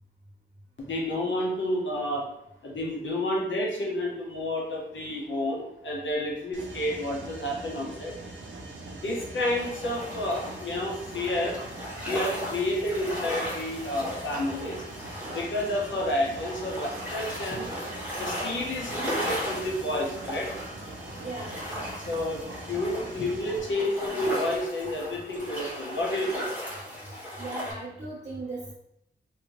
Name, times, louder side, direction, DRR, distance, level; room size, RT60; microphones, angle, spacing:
voice 1, 0.8-2.2 2.6-8.1 9.0-11.6 12.0-14.8 15.3-17.7 18.2-20.5 22.1-26.5, left 1 dB, 75° left, -2 dB, 0.9 m, -30 dB
Mechanisms, 6.5-23.6, right 2 dB, 80° right, 0.7 m, -43 dB
sound 1, 9.6-27.7, equal, 10° right, 1.2 m, -36 dB
voice 2, 21.2-21.5 27.4-28.7, right 2 dB, 35° right, -10 dB, 0.9 m, -37 dB
3.2 x 2.7 x 3.0 m, 0.81 s
wide cardioid pair, 155°, 20 cm